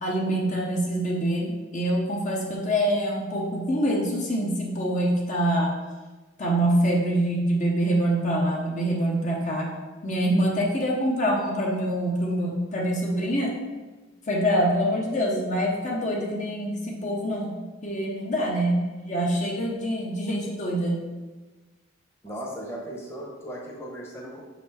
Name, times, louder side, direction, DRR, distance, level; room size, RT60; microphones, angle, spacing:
voice 1, 0.0-5.7 6.4-9.7 10.0-13.5 14.3-21.1, right 1 dB, 40° left, -2 dB, 1.0 m, -25 dB
voice 2, 22.2-24.4, equal, 15° left, -2 dB, 1.1 m, -37 dB
6.2 x 4.3 x 4.3 m, 1.2 s
head